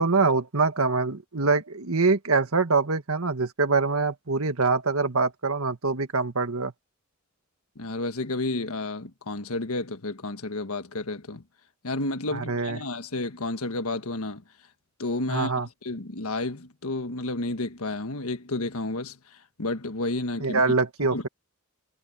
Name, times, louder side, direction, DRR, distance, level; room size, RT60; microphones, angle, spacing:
voice 1, 0.0-6.7 12.3-12.8 15.3-15.7 20.4-21.3, right 4 dB, 80° right, 1.8 m, -24 dB
voice 2, 7.7-11.4 11.8-14.4 15.0-20.6 21.1-21.2, left 2 dB, 85° left, 1.5 m, -31 dB
head